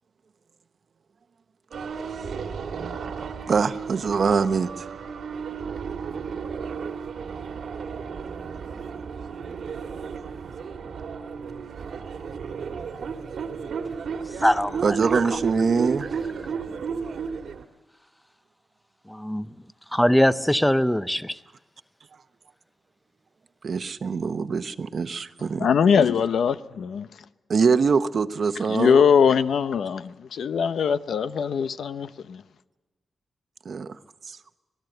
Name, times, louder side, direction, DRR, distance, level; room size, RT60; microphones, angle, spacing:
sound 1, 1.7-17.6, right 6 dB, 75° right, 1.6 m, -33 dB
voice 1, 3.5-4.9 7.3-7.4 14.8-16.2 17.1-17.2 23.6-25.7 27.5-29.0 33.6-34.0 34.3-34.4, right 5 dB, 55° right, 0.9 m, -24 dB
voice 2, 14.4-15.0 15.3-15.4 19.1-19.5 19.9-21.4, equal, 5° left, 0.7 m, -22 dB
voice 3, 25.6-27.1 28.7-32.4, left 6 dB, 80° left, 0.8 m, -21 dB
26.0 x 18.5 x 8.0 m
wide cardioid pair, 110°, 0 cm